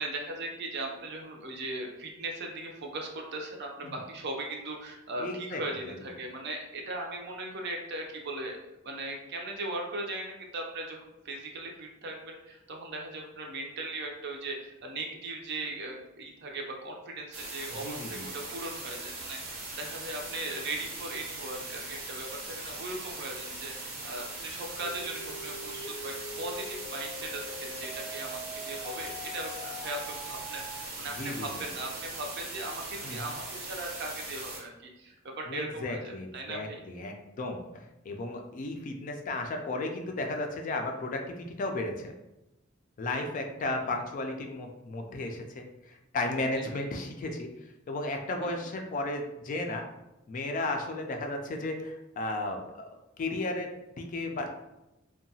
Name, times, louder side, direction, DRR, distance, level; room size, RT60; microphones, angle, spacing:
voice 1, 0.0-8.6 8.8-36.8 46.6-46.7 48.4-48.6, right 2 dB, 55° right, 1 dB, 0.5 m, -38 dB
voice 2, 5.2-5.6 17.8-18.2 31.2-31.5 33.0-33.3 35.5-42.1 43.0-49.8 50.3-52.9 53.2-54.5, left 2 dB, 40° left, 3 dB, 0.3 m, -34 dB
sound 1, 17.3-34.6, right 2 dB, 90° right, 0.9 m, -40 dB
sound 2, 24.8-30.8, left 1 dB, 5° left, 0.7 m, -44 dB
2.7 x 2.2 x 2.7 m, 0.95 s
head